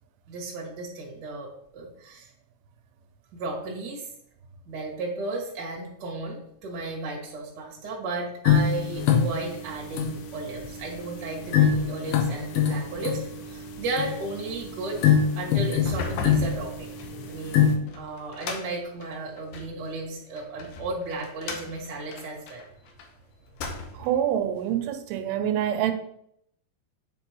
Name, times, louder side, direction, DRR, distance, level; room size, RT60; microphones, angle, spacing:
voice 1, 0.3-2.3 3.3-4.1 4.7-13.2 13.4-16.9 17.2-22.6, right 3 dB, 45° right, 1.4 m, -34 dB
sound 1, 8.5-17.8, left 8 dB, 90° left, 2.9 m, -25 dB
sound 2, 15.7-19.8 20.4-23.1 23.4-24.2, left 3 dB, 75° left, 2.1 m, -37 dB
voice 2, 23.9-25.9, right 10 dB, 85° right, 2.7 m, -26 dB
8.1 x 5.9 x 3.0 m
omnidirectional pair, 4.8 m